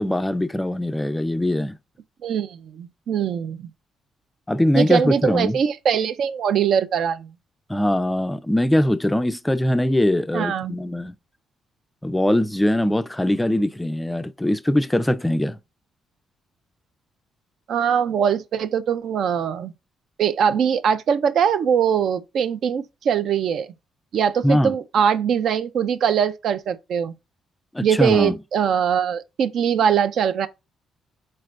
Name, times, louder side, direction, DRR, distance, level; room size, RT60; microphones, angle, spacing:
voice 1, 0.0-1.8 4.5-5.6 7.7-11.1 12.0-15.6 24.4-24.7 27.7-28.3, left 1 dB, 10° left, 0.3 m, -21 dB
voice 2, 2.2-3.7 4.8-7.3 10.3-10.7 17.7-19.7 20.2-23.7 24.1-27.1 27.8-30.5, right 8 dB, 70° right, 0.4 m, -22 dB
4.2 x 3.2 x 2.4 m
cardioid pair, 90°, 0 cm